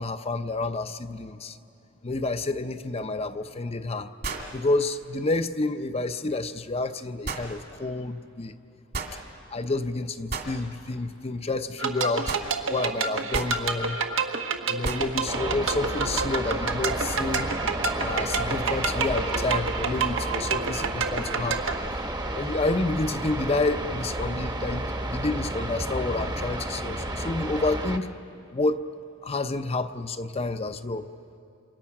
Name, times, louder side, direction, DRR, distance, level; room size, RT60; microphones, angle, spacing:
voice 1, 0.0-1.6 2.0-4.1 4.5-8.5 9.5-12.3 12.7-14.0 14.7-17.5 18.0-21.6 22.3-28.1 28.5-28.8 29.2-31.1, left 2 dB, 30° left, 9 dB, 0.7 m, -29 dB
sound 1, 3.0-3.1 4.2-4.6 7.2-7.5 8.9-9.2 10.3-10.5 12.3-12.5 13.3-13.6 14.8-15.1, right 3 dB, 55° right, 2.3 m, -32 dB
sound 2, 11.8-21.8, right 5 dB, 75° right, 1.2 m, -29 dB
sound 3, 15.3-28.0, right 1 dB, 20° right, 1.1 m, -32 dB
28.5 x 26.5 x 6.0 m, 2.6 s
head